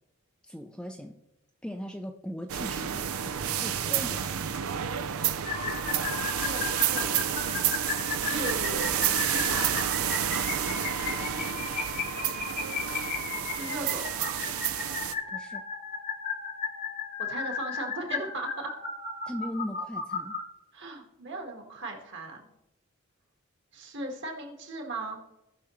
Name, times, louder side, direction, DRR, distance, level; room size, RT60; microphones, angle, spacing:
voice 1, 0.4-1.2 1.6-4.6 11.2-11.7 15.3-15.7 19.3-20.4, equal, 5° left, 4 dB, 0.4 m, -39 dB
sound 1, 2.5-15.1, right 9 dB, 80° right, 0.5 m, -30 dB
sound 2, 5.5-20.4, left 5 dB, 40° left, 1.2 m, -35 dB
voice 2, 6.3-10.0 13.4-14.4 17.2-18.7 20.7-22.4 23.7-25.2, right 2 dB, 55° right, 2 dB, 1.7 m, -38 dB
17.0 x 5.9 x 3.1 m, 0.91 s
head